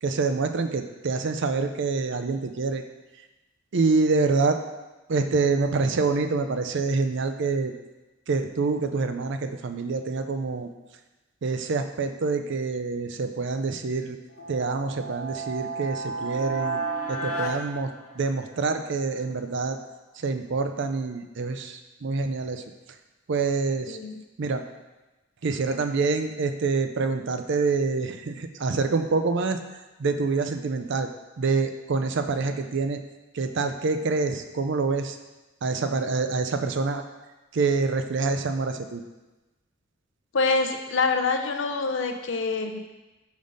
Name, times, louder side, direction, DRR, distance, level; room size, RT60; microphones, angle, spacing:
voice 1, 0.0-2.8 3.7-4.6 5.1-7.7 8.3-10.7 11.4-14.2 14.5-16.8 17.1-19.8 20.2-22.6 23.3-24.0 24.4-24.6 25.4-29.6 30.0-31.1 31.4-33.0 33.3-35.2 35.6-37.0 37.5-39.0, right 4 dB, 55° right, 7 dB, 0.4 m, -26 dB
sound 1, 14.3-18.7, right 3 dB, 80° left, 1.1 m, -32 dB
voice 2, 23.9-24.2 40.3-42.8, left 4 dB, 60° left, 5 dB, 0.6 m, -25 dB
5.2 x 4.0 x 5.1 m, 1.1 s
head